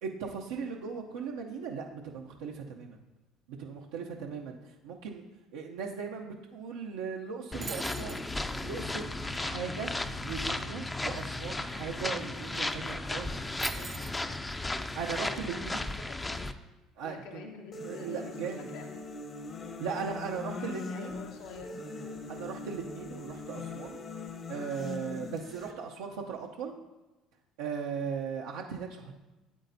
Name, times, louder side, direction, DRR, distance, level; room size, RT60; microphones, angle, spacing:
voice 1, 0.0-3.0 3.6-4.6 4.8-5.2 5.5-8.3 8.6-9.9 10.2-13.4 14.9-15.9 17.0-17.5 17.8-18.6 19.8-21.2 22.3-24.0 24.5-26.7 27.6-29.1, right 6 dB, 85° right, -1 dB, 0.6 m, -38 dB
voice 2, 4.0-4.3 9.5-9.6 13.7-14.5 15.2-16.5 17.0-19.0 19.9-21.8, left 4 dB, 80° left, 2 dB, 1.1 m, -48 dB
sound 1, 7.5-16.5, left 2 dB, 15° left, 0.5 m, -35 dB
sound 2, 7.6-8.3 12.2-12.3 12.5-12.9 13.6-14.2, right 7 dB, 45° right, 0.4 m, -41 dB
sound 3, 17.7-25.7, left 3 dB, 40° left, 1.0 m, -41 dB
8.3 x 8.2 x 2.7 m, 1.1 s
supercardioid pair, 80°, 0 cm